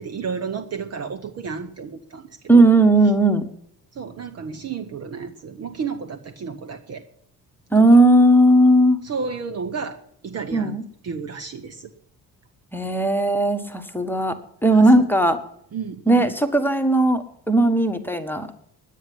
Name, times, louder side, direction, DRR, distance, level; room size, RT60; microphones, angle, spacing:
voice 1, 0.0-2.3 2.5-2.7 3.9-7.0 7.8-8.0 9.0-10.0 10.2-10.8 11.0-11.9 14.7-14.8 15.7-16.3, right 5 dB, 35° right, 6 dB, 0.9 m, -32 dB
voice 2, 2.5-3.4 7.7-9.0 10.5-10.8 12.7-14.4 14.6-15.4 16.1-18.5, right 1 dB, 5° left, 8 dB, 1.3 m, -16 dB
9.8 x 9.3 x 9.8 m, 0.70 s
figure-of-eight pair, 50°, 47 cm